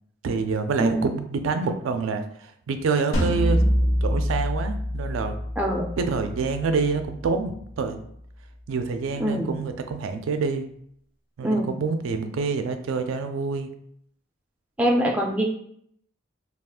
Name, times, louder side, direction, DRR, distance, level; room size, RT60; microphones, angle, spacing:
voice 1, 0.2-3.6 4.0-5.3 6.0-8.0 8.7-10.7 11.4-13.7, right 4 dB, 85° right, 7 dB, 0.3 m, -27 dB
sound 1, 3.1-8.2, equal, 85° left, 0.8 m, -26 dB
voice 2, 5.6-5.9 9.2-9.6 11.4-11.7 14.8-15.4, equal, 5° right, -1 dB, 0.3 m, -23 dB
2.4 x 2.3 x 3.5 m, 0.67 s
head